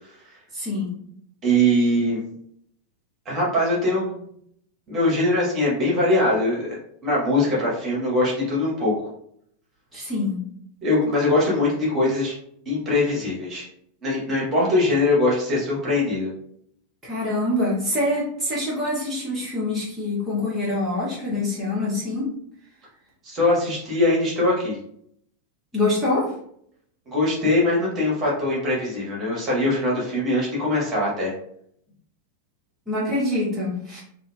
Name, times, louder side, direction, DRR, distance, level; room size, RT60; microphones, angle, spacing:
voice 1, 0.5-1.0 9.9-10.4 17.0-22.3 25.7-26.3 32.9-34.0, left 2 dB, 10° right, -9 dB, 1.1 m, -25 dB
voice 2, 1.4-2.2 3.2-4.1 4.9-6.8 7.0-8.9 10.8-12.3 12.7-13.7 14.0-16.3 23.2-24.8 27.1-31.3, left 1 dB, 30° right, -5 dB, 1.2 m, -22 dB
2.6 x 2.5 x 2.2 m, 0.68 s
figure-of-eight pair, 90°, 0 cm